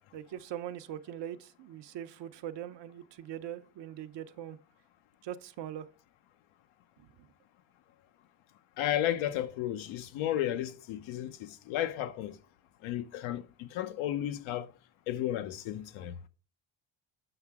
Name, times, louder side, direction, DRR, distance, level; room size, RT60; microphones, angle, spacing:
voice 1, 0.1-4.6 5.2-5.9 7.0-7.3, right 10 dB, 65° right, 0.8 m, -41 dB
voice 2, 8.8-12.4 12.8-14.7 15.1-16.2, left 12 dB, 85° left, 0.9 m, -33 dB
7.8 x 5.8 x 3.5 m
cardioid pair, 115°, 46 cm